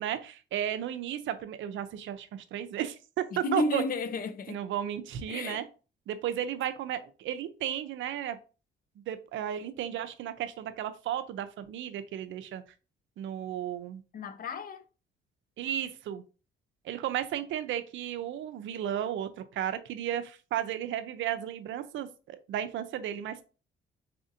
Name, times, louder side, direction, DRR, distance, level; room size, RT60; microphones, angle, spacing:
voice 1, 0.0-3.8 4.5-5.6 6.1-8.4 9.1-12.6 13.2-14.0 15.6-16.2 16.8-23.4, right 10 dB, 75° right, 0.5 m, -34 dB
voice 2, 3.3-4.6 5.3-5.7 14.1-14.9, left 3 dB, 45° left, 0.5 m, -32 dB
4.2 x 2.6 x 2.6 m
cardioid pair, 90°, 20 cm